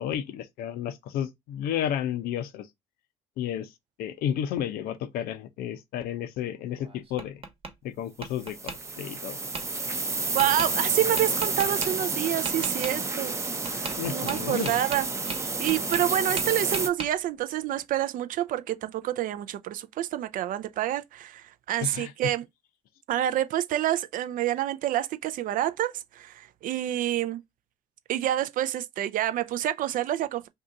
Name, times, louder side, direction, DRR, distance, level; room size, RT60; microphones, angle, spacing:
voice 1, 0.0-2.7 3.4-3.7 4.0-7.4 7.8-9.4 14.0-14.8 21.8-22.1, left 10 dB, 70° left, 0.5 m, -32 dB
Tap, 6.7-7.7 8.2-8.8 9.5-9.6 10.4-10.7 11.2-11.9 12.5-12.9 13.7-14.0 14.3-16.1 16.4-17.1, right 4 dB, 35° right, 1.1 m, -36 dB
sound 1, 8.4-16.9, right 3 dB, 20° right, 0.6 m, -30 dB
voice 2, 10.3-13.4 13.6-15.1 15.6-22.4 23.1-27.4 28.1-30.5, right 12 dB, 60° right, 0.4 m, -28 dB
2.7 x 2.3 x 3.7 m
supercardioid pair, 65°, 16 cm